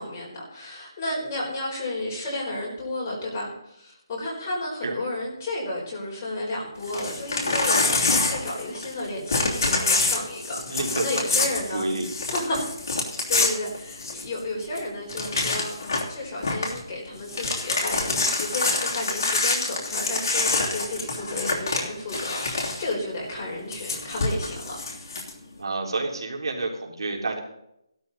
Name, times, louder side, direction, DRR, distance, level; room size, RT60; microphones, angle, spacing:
voice 1, 0.0-11.9 12.3-12.6 13.3-24.8, left 2 dB, 20° left, -4 dB, 4.1 m, -32 dB
Crumpling crinkling / Tearing, 6.8-9.0 9.3-14.4 14.7-14.8 15.1-16.1 16.4-16.8 17.1-22.9 23.7-25.3, left 3 dB, 40° left, 3.0 m, -26 dB
voice 2, 10.7-12.1 21.1-21.5 25.6-27.4, right 2 dB, 70° right, 0 dB, 3.7 m, -30 dB
15.5 x 12.5 x 4.1 m, 0.80 s
hypercardioid pair, 175°, 3 cm